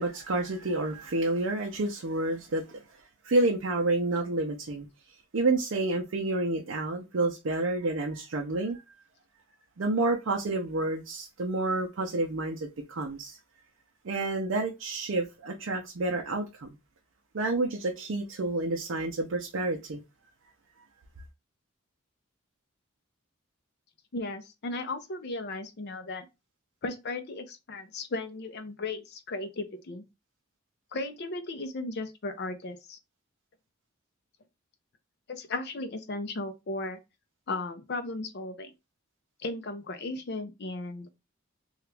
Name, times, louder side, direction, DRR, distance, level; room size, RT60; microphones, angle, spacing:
voice 1, 0.0-2.8 3.2-8.8 9.8-13.4 14.0-16.7 17.3-20.0, right 2 dB, 65° right, 0.5 m, -29 dB
voice 2, 24.1-26.3 26.8-30.0 30.9-33.0 35.3-37.0 37.5-38.7 39.4-41.1, left 2 dB, 50° left, 0.6 m, -36 dB
2.9 x 2.4 x 3.3 m
head